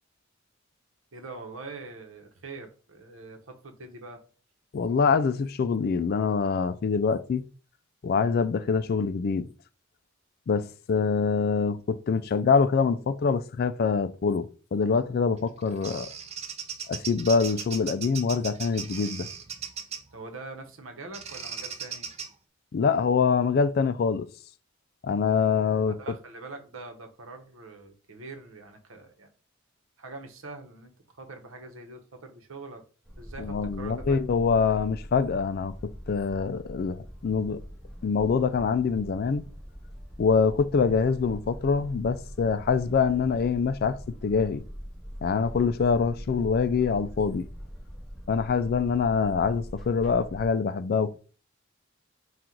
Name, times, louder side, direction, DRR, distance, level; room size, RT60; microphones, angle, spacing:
voice 1, 1.1-4.2 20.1-22.1 26.0-29.3 30.0-32.8 33.2-34.2, right 3 dB, 80° right, 0.9 m, -43 dB
voice 2, 4.7-7.4 8.0-9.5 10.5-16.1 16.9-19.3 22.7-24.3 25.0-26.0 33.4-37.6 38.0-39.5 40.2-44.6 45.2-47.5 48.3-51.2, left 5 dB, 50° left, 0.3 m, -25 dB
Bird vocalization bird call bird song, 15.4-20.1 21.1-22.3, right 7 dB, 30° right, 0.5 m, -38 dB
sound 1, 33.0-50.5, equal, ahead, 1.5 m, -42 dB
4.4 x 2.4 x 3.8 m
head